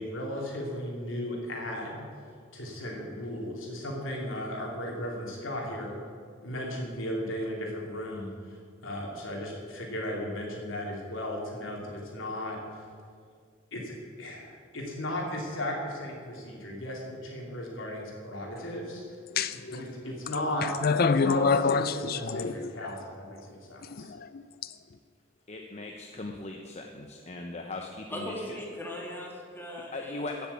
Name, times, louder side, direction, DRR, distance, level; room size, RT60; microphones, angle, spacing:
voice 1, 0.0-2.0 2.5-6.0 6.4-12.8 13.7-19.2 19.7-20.7 21.0-24.1, left 1 dB, 80° left, -1 dB, 3.2 m, -36 dB
sound 1, 19.4-19.8 20.3-22.9 23.8-24.7, left 5 dB, 50° left, 0.5 m, -26 dB
voice 2, 25.5-28.5 29.8-30.5, left 2 dB, 35° left, 3 dB, 0.8 m, -39 dB
voice 3, 28.1-30.5, equal, 10° left, -2 dB, 2.3 m, -39 dB
15.0 x 7.1 x 8.5 m, 2.1 s
head